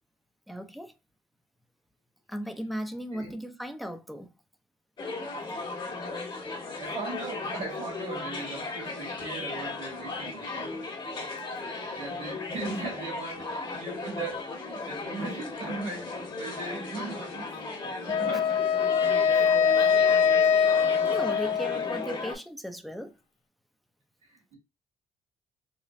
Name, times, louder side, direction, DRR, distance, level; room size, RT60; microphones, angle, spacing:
voice 1, 0.5-0.9 2.3-4.3 19.3-19.5 19.8-19.9 20.4-23.2, equal, ahead, 0.6 m, -37 dB
sound 1, 5.0-22.4, left 3 dB, 40° left, 1.4 m, -36 dB
voice 2, 6.8-10.9 11.9-17.6 17.8-18.6 21.2-21.5 24.2-24.6, right 3 dB, 70° right, 2.1 m, -38 dB
Wind instrument woodwind instrument, 18.1-22.2, left 7 dB, 75° left, 0.5 m, -23 dB
4.1 x 2.2 x 3.1 m
cardioid pair, 80°, 11 cm